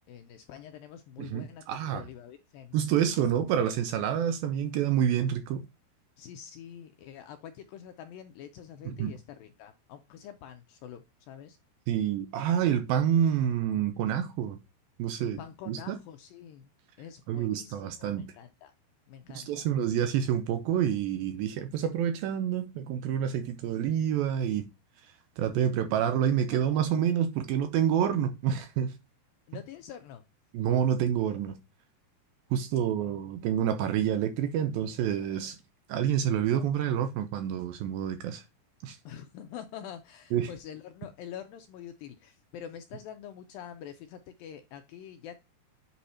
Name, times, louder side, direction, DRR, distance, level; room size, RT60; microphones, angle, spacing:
voice 1, 0.1-2.8 6.2-11.6 15.2-16.7 17.0-18.7 19.1-19.7 25.9-26.0 26.5-26.6 29.5-30.2 39.1-45.5, left 9 dB, 80° left, 2.1 m, -46 dB
voice 2, 1.2-2.1 2.7-5.6 8.9-9.1 11.9-14.6 15.0-15.4 15.7-16.0 17.3-18.3 19.3-24.7 25.4-28.9 30.5-31.6 32.5-35.6 35.9-38.4 38.8-39.0 40.3-40.5, right 9 dB, 80° right, 2.2 m, -28 dB
8.4 x 3.5 x 4.2 m
omnidirectional pair, 4.6 m